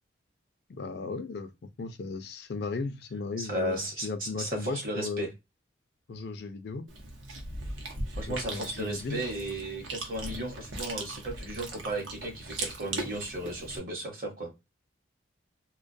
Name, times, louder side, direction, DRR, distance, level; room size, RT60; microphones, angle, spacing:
voice 1, 0.7-1.5 1.8-5.3 6.1-6.9 8.3-9.2, left 4 dB, 55° left, 0.4 m, -36 dB
voice 2, 3.4-5.3 8.2-14.5, right 1 dB, 45° right, 0.9 m, -35 dB
Chewing mastication, 6.9-13.8, right 2 dB, 80° right, 0.7 m, -39 dB
2.2 x 2.1 x 2.6 m
head